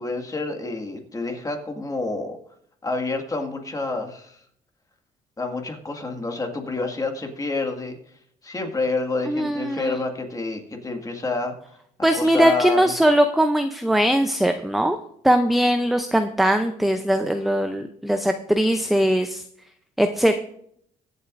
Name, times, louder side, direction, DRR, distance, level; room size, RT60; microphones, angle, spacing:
voice 1, 0.0-2.4 2.8-4.4 5.4-8.0 8.4-11.5 12.1-13.0, left 3 dB, 20° left, 3 dB, 1.9 m, -28 dB
voice 2, 9.3-9.9 12.0-15.0 15.2-19.4 20.0-20.4, equal, ahead, 6 dB, 0.6 m, -20 dB
23.0 x 7.8 x 2.6 m, 0.69 s
cardioid pair, 110°, 17 cm